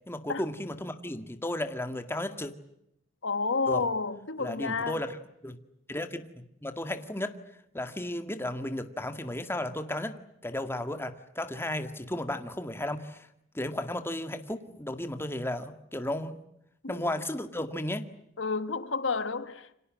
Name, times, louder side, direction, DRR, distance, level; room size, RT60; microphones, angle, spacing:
voice 1, 0.1-2.5 3.7-3.9 4.4-5.2 5.4-5.6 5.9-7.4 7.7-13.3 13.5-16.4 16.9-18.1, left 1 dB, 15° left, 1.9 m, -34 dB
voice 2, 3.2-5.0 16.8-17.0 18.4-19.7, left 4 dB, 85° left, 1.6 m, -30 dB
29.0 x 26.0 x 7.6 m
head